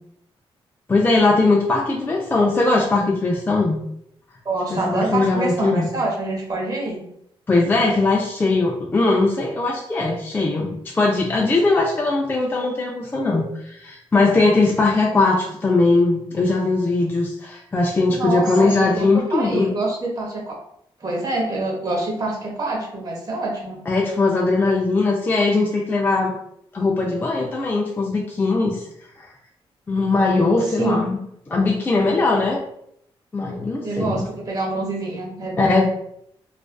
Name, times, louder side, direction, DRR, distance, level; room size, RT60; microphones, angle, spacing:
voice 1, 0.9-3.8 4.7-5.9 7.5-19.7 23.9-26.4 26.7-28.9 29.9-31.2 31.5-32.6 33.3-34.3 35.6-35.8, left 3 dB, 20° left, -1 dB, 0.3 m, -20 dB
voice 2, 4.4-7.0 18.1-20.6 21.0-23.8 30.7-31.0 33.8-35.8, right 2 dB, 40° right, -2 dB, 0.8 m, -26 dB
2.4 x 2.3 x 2.2 m, 0.73 s
cardioid pair, 100°, 10 cm